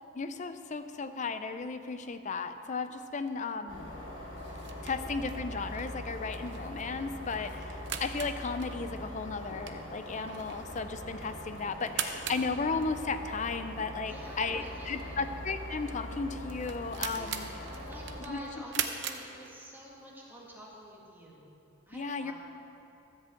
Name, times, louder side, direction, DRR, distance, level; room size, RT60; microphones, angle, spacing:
voice 1, 0.1-3.9 4.8-17.5 18.3-18.4 21.9-22.3, left 4 dB, 35° left, 10 dB, 0.5 m, -35 dB
sound 1, 3.7-18.2, left 1 dB, 65° left, 2.8 m, -42 dB
sound 2, 4.4-20.0, right 8 dB, 55° right, 0.7 m, -42 dB
voice 2, 14.1-15.3 17.1-21.6 21.9-22.3, equal, 10° right, -5 dB, 1.9 m, -48 dB
14.0 x 5.5 x 7.8 m, 2.8 s
head